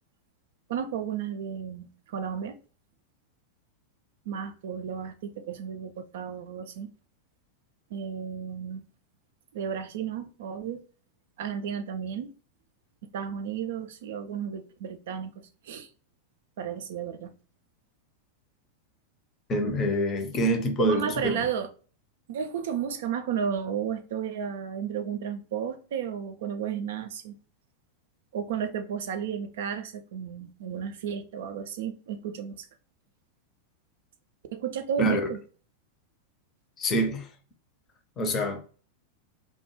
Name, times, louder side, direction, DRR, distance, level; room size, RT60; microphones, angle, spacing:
voice 1, 0.7-2.6 4.3-6.9 7.9-8.8 9.5-10.8 11.4-12.3 13.0-15.9 16.6-17.3 20.8-21.7 22.3-27.4 28.3-32.7 34.5-35.4, right 8 dB, 55° right, 0.3 m, -33 dB
voice 2, 19.5-21.5 35.0-35.3 36.8-37.3 38.2-38.6, equal, 25° left, 0.6 m, -26 dB
2.2 x 2.2 x 3.0 m
figure-of-eight pair, 90°, 0 cm